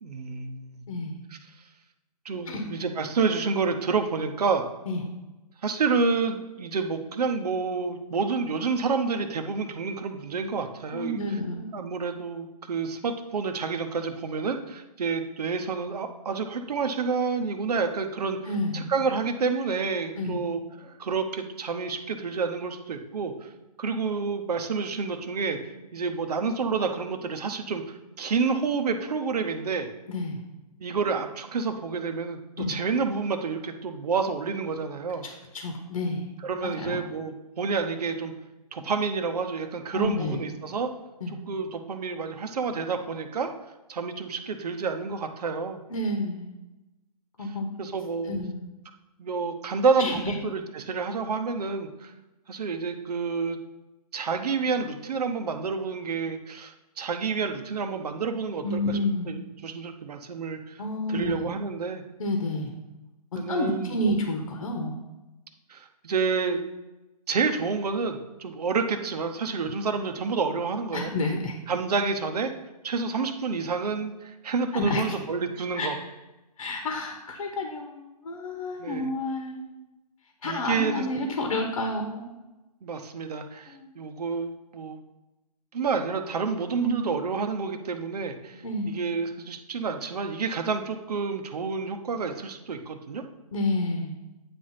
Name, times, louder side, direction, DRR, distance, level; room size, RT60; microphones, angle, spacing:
voice 1, 0.0-0.8 2.2-4.6 5.6-11.2 11.7-18.4 18.7-23.5 23.8-25.6 25.9-29.9 30.8-35.3 36.4-38.3 38.7-40.9 41.5-43.5 43.9-45.8 47.8-48.4 49.2-52.1 52.5-53.6 54.1-59.0 59.3-60.8 61.1-62.0 63.4-64.1 65.7-66.6 67.3-71.1 71.7-72.5 72.8-75.9 78.8-79.1 80.4-81.3 82.8-85.0 85.7-93.2, right 5 dB, 70° right, 6 dB, 0.9 m, -29 dB
voice 2, 0.9-1.2 2.5-2.6 4.9-5.0 10.9-11.7 18.4-18.9 20.1-20.4 30.1-30.4 32.6-32.8 35.2-36.3 36.8-37.0 39.9-40.4 41.2-41.4 45.9-46.5 47.4-47.7 48.2-48.6 50.0-50.4 58.6-59.3 60.8-61.4 62.2-62.7 63.3-64.9 70.9-71.6 74.7-75.2 75.8-75.9 76.6-79.7 80.4-82.3 83.7-83.9 86.8-87.0 88.6-88.9 93.5-94.1, left 1 dB, 60° left, 3 dB, 1.2 m, -29 dB
9.2 x 3.5 x 5.6 m, 1.0 s
hypercardioid pair, 160°, 21 cm